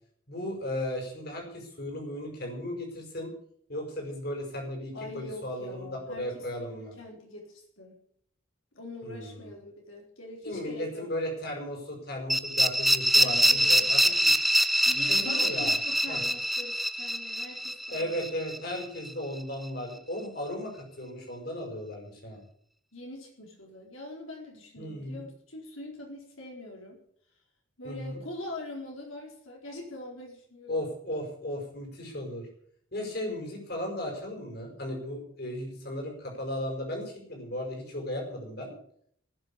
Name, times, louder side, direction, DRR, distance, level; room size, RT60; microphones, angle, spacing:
voice 1, 0.3-3.3 3.7-6.9 9.0-9.5 10.4-14.3 15.0-15.7 16.1-16.2 17.9-22.4 24.8-25.2 27.8-28.2 30.7-32.5 32.9-38.7, left 1 dB, 50° left, 1 dB, 5.1 m, -36 dB
voice 2, 4.9-8.0 8.7-11.1 13.1-14.0 14.8-18.2 22.9-27.0 27.8-30.8, left 2 dB, 80° left, 0 dB, 4.5 m, -43 dB
sound 1, 12.3-19.1, equal, ahead, 0.5 m, -25 dB
19.0 x 7.1 x 8.4 m, 0.63 s
head